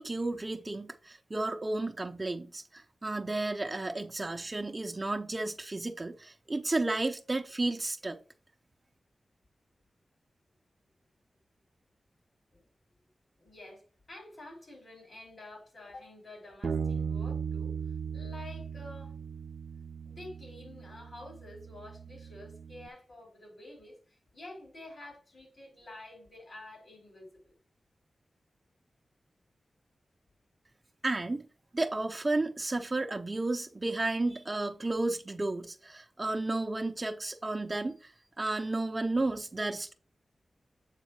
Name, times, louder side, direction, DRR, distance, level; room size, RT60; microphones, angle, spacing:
voice 1, 0.0-8.2 31.0-31.5 31.7-39.9, right 2 dB, 35° right, 0.7 m, -32 dB
voice 2, 13.4-17.7 18.1-19.2 20.0-27.6, left 1 dB, 60° left, 4.2 m, -49 dB
Bass guitar, 16.6-22.9, right 6 dB, 70° right, 0.5 m, -37 dB
8.2 x 3.7 x 4.8 m
cardioid pair, 60°, 0 cm